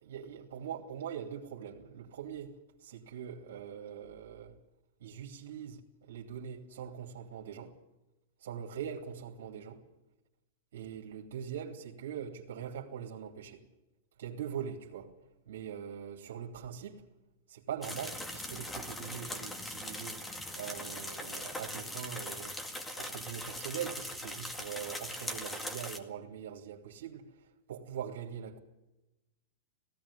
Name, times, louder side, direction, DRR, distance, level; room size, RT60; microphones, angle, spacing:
voice 1, 0.0-4.5 5.0-7.7 8.4-9.8 10.7-13.6 14.2-15.1 15.5-17.0 17.5-20.2 20.6-22.6 23.0-27.2 27.7-28.6, right 8 dB, 75° right, 1 dB, 2.8 m, -42 dB
sound 1, 17.8-26.0, left 1 dB, 10° left, 2.1 m, -41 dB
17.5 x 16.5 x 10.0 m, 1.0 s
hypercardioid pair, 140°, 0 cm